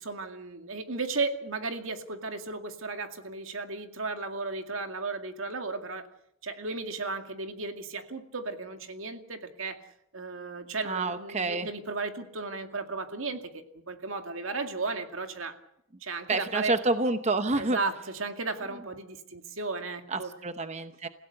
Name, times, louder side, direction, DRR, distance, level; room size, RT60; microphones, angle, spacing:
voice 1, 0.0-6.1 6.4-9.9 10.1-15.6 16.0-16.8 17.6-20.3, right 3 dB, 80° right, 6 dB, 2.2 m, -35 dB
voice 2, 10.9-11.7 16.3-17.8 20.1-21.1, right 2 dB, 35° right, 9 dB, 0.8 m, -28 dB
28.0 x 16.5 x 6.7 m, 0.77 s
head